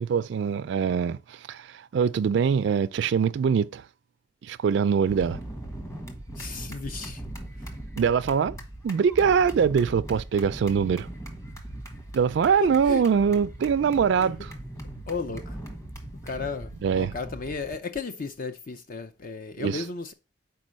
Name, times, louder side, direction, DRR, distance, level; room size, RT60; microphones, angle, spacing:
voice 1, 0.0-3.9 4.4-5.4 8.0-8.6 8.8-11.1 12.1-14.5 16.8-17.1 19.6-19.9, right 6 dB, 70° right, 0.3 m, -23 dB
sound 1, 5.1-17.7, right 1 dB, 15° left, 1.4 m, -40 dB
voice 2, 6.4-7.2 12.6-13.0 14.2-14.3 15.1-15.6 16.2-20.1, left 4 dB, 50° left, 0.5 m, -34 dB
5.4 x 4.6 x 6.2 m
head